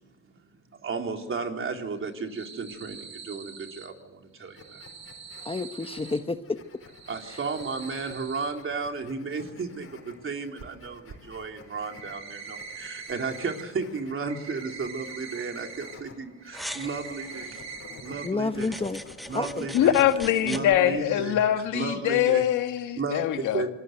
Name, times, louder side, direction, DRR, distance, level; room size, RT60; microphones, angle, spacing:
voice 1, 0.2-4.8 7.1-17.6 18.0-18.8 19.3-20.0 20.4-21.4 21.7-22.4 23.0-23.7, right 4 dB, 45° right, 3 dB, 3.7 m, -34 dB
sound 1, 2.0-3.9 4.4-6.2 6.8-8.5 10.6-10.7 11.1-11.2 11.6-13.6 13.9-16.0 16.3-18.3 18.6-18.7 19.1-19.2 20.2-20.4 20.7-20.8, right 6 dB, 60° right, 4.3 m, -43 dB
sound 2, 4.6-20.6, left 4 dB, 45° left, 5.3 m, -50 dB
voice 2, 5.4-6.6 18.2-19.0 19.3-19.7, left 3 dB, 20° left, 8 dB, 1.1 m, -29 dB
sound 3, 16.5-17.6 18.5-20.6, equal, ahead, 1.7 m, -41 dB
voice 3, 19.7-23.6, left 11 dB, 85° left, 7 dB, 1.9 m, -23 dB
26.0 x 21.0 x 7.9 m, 1.1 s
cardioid pair, 90°, 30 cm